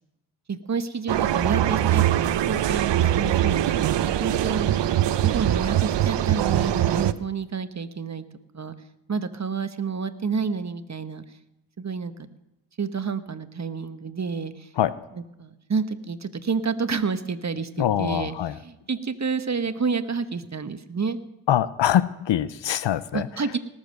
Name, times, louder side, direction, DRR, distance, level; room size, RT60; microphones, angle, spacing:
voice 1, 0.5-2.0 2.5-4.7 5.2-8.2 8.5-8.7 9.1-11.2 11.8-12.1 12.8-14.7 15.2-21.2 23.1-23.6, right 5 dB, 35° right, 11 dB, 1.2 m, -29 dB
sound 1, 1.1-7.1, right 11 dB, 60° right, 0.7 m, -22 dB
voice 2, 17.8-18.6 21.5-23.3, left 11 dB, 60° left, 17 dB, 0.8 m, -23 dB
18.5 x 7.4 x 6.6 m, 0.92 s
supercardioid pair, 50°, 49 cm